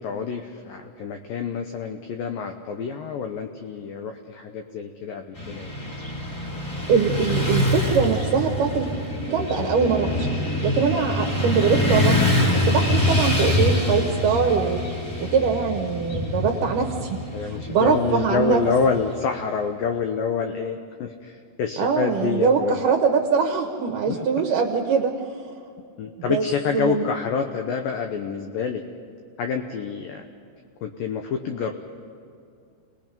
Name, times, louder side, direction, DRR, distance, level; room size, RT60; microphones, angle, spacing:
voice 1, 0.0-5.8 17.3-22.8 24.1-24.5 26.0-28.8 29.4-30.2 30.8-31.7, left 6 dB, 85° left, 5 dB, 2.0 m, -27 dB
Motorcycle / Traffic noise roadway noise, 5.3-19.5, left 1 dB, 25° left, 2.4 m, -25 dB
voice 2, 6.9-8.9 9.3-12.2 12.5-14.8 15.2-18.6 21.8-25.2 26.3-26.4 26.7-27.1, right 6 dB, 70° right, 3 dB, 2.1 m, -22 dB
29.5 x 19.5 x 5.3 m, 2.5 s
omnidirectional pair, 5.3 m